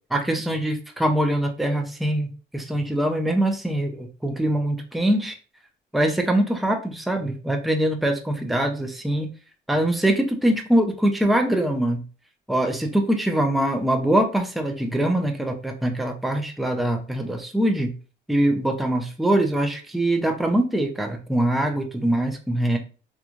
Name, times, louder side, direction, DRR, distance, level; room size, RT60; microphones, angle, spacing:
voice 1, 0.1-5.4 5.9-9.3 9.7-12.0 12.5-17.9 18.3-22.8, right 1 dB, ahead, 4 dB, 0.5 m, -23 dB
2.9 x 2.4 x 2.4 m, 0.35 s
cardioid pair, 90°, 20 cm